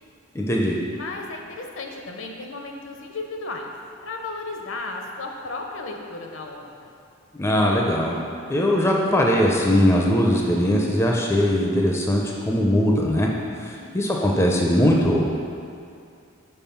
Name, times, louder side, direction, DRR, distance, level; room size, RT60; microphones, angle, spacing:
voice 1, 0.3-0.8 7.4-8.2 8.5-13.3 13.6-15.2, equal, 15° left, -1 dB, 0.4 m, -20 dB
voice 2, 1.0-3.7 4.0-6.9 13.7-14.1, left 3 dB, 65° left, 2 dB, 0.7 m, -34 dB
5.5 x 4.5 x 5.7 m, 2.4 s
head